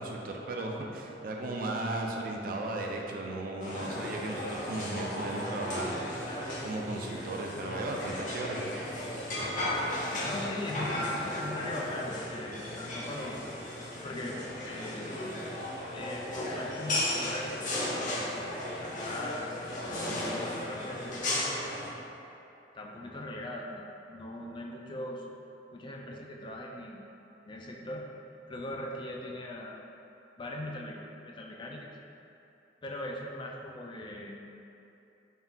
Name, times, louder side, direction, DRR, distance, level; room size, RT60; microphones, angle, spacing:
voice 1, 0.0-8.7, right 2 dB, 55° right, 0 dB, 0.4 m, -36 dB
sound 1, 3.6-21.9, left 1 dB, 45° left, 0.7 m, -35 dB
voice 2, 10.2-13.4 14.0-15.2 15.9-18.2 18.8-19.6 20.3-21.6 22.7-25.2 25.7-27.0 27.4-28.1 28.5-29.8 30.4-31.0 31.3-31.9 32.8-34.4, left 1 dB, 25° left, -1 dB, 0.3 m, -40 dB
3.6 x 2.4 x 4.1 m, 2.8 s
head